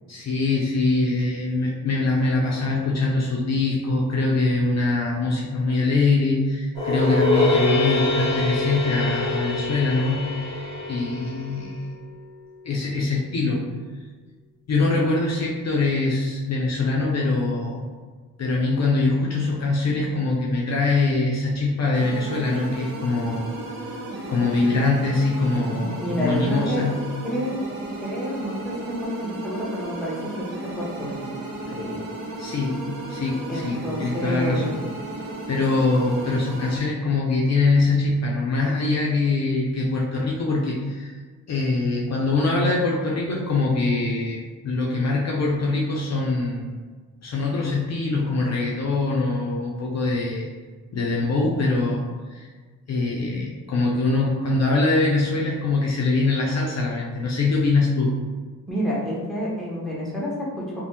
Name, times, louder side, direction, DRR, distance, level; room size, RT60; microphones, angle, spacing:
voice 1, 0.1-10.3 10.9-11.9 12.6-13.6 14.7-17.9 18.4-23.5 24.3-27.0 32.4-32.8 33.1-34.8 35.5-41.1 41.5-46.8 47.2-50.5 50.9-52.0 52.3-52.5 52.9-58.1, left 3 dB, 50° left, -3 dB, 0.5 m, -23 dB
sound 1, 6.7-12.0, left 2 dB, 15° left, 1.1 m, -24 dB
sound 2, 21.9-36.8, right 2 dB, 65° right, 0.7 m, -34 dB
voice 2, 25.7-26.9 27.2-27.7 28.0-31.3 31.7-32.0 33.5-34.7 58.7-60.8, equal, ahead, -6 dB, 0.9 m, -29 dB
3.2 x 2.1 x 2.8 m, 1.5 s
cardioid pair, 80°, 35 cm